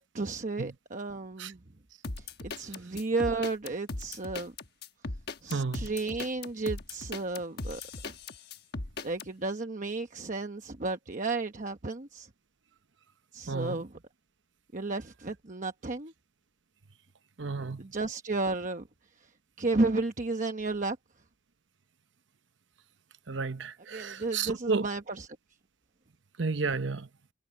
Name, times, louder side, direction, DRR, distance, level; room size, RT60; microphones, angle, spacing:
voice 1, 0.0-1.6 2.2-4.5 5.4-8.1 9.0-12.3 13.3-13.9 14.7-16.1 17.6-18.8 19.2-19.3 19.6-21.0 23.9-25.3, right 3 dB, 40° right, 1.0 m, -33 dB
sound 1, 2.0-9.3, left 3 dB, 55° left, 1.2 m, -38 dB
voice 2, 5.5-5.9 13.5-13.8 17.4-17.9 23.3-24.9 26.4-27.1, right 4 dB, 65° right, 0.9 m, -32 dB
head